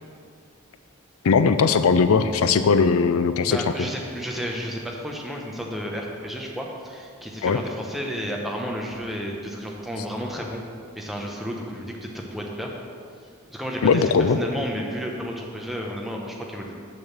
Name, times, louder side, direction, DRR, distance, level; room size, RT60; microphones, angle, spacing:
voice 1, 1.2-3.6 7.4-7.6 13.8-14.4, left 5 dB, 85° left, 11 dB, 0.4 m, -19 dB
voice 2, 3.5-10.6 10.9-12.7 13.5-16.7, equal, ahead, -1 dB, 0.9 m, -32 dB
6.7 x 6.4 x 7.2 m, 2.3 s
head